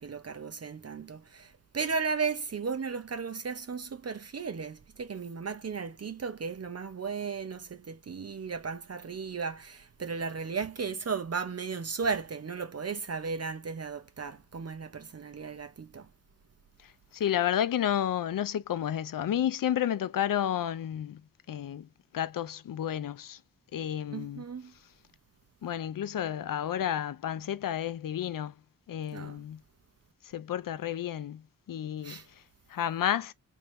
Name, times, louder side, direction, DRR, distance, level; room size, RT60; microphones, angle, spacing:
voice 1, 0.0-16.1 24.1-24.7 29.1-29.4 32.0-32.3, right 5 dB, 45° right, 0.7 m, -35 dB
voice 2, 16.8-21.2 21.5-21.9 22.1-23.4 23.7-24.4 25.6-28.5 28.9-29.6 30.2-32.2 32.7-33.3, left 10 dB, 65° left, 0.5 m, -31 dB
3.4 x 2.7 x 3.2 m
wide cardioid pair, 80°, 35 cm